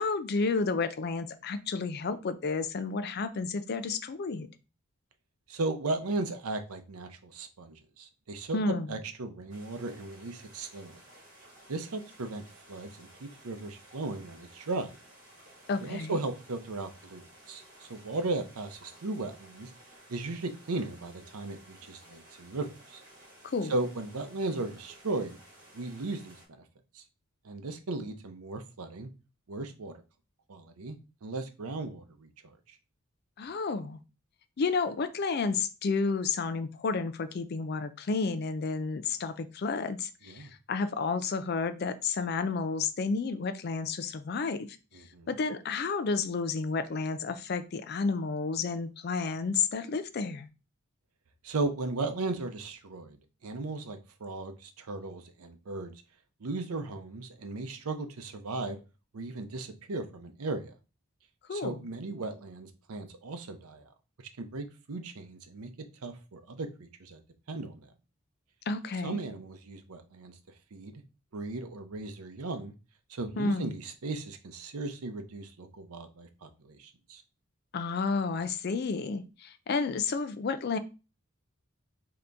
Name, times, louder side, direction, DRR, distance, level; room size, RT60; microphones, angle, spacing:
voice 1, 0.0-4.5 8.5-8.9 15.7-16.2 23.4-23.8 33.4-34.0 34.6-44.7 45.3-50.5 61.5-61.8 68.7-69.2 73.4-73.8 77.7-80.8, left 4 dB, 45° left, 11 dB, 0.4 m, -31 dB
voice 2, 5.5-8.6 8.9-11.0 11.7-14.9 15.8-19.7 20.1-23.0 23.7-25.4 25.7-26.6 26.9-27.0 27.4-29.1 29.5-29.9 30.5-32.3 40.3-40.5 44.9-45.3 51.4-53.2 53.4-55.9 56.4-58.8 59.1-60.7 61.5-63.8 64.4-65.7 66.0-67.2 67.5-67.9 69.0-70.3 70.7-71.0 71.3-72.7 73.1-77.2, right 2 dB, 85° right, 7 dB, 0.6 m, -36 dB
sound 1, 9.5-26.5, right 1 dB, 35° right, 1.7 m, -55 dB
3.8 x 2.9 x 3.3 m, 0.31 s
head